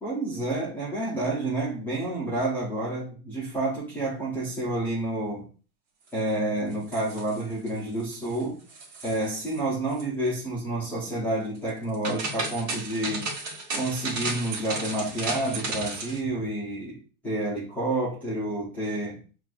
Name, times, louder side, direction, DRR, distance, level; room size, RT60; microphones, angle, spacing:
voice 1, 0.0-5.5 6.1-8.6 9.0-13.3 13.8-17.0 17.2-19.2, right 1 dB, 5° left, -9 dB, 0.6 m, -29 dB
sound 1, 6.7-7.7 8.0-8.4 8.7-9.6 9.9-10.0 11.7-16.2, right 3 dB, 55° right, 1.5 m, -34 dB
5.9 x 2.6 x 2.3 m, 0.36 s
supercardioid pair, 165°, 47 cm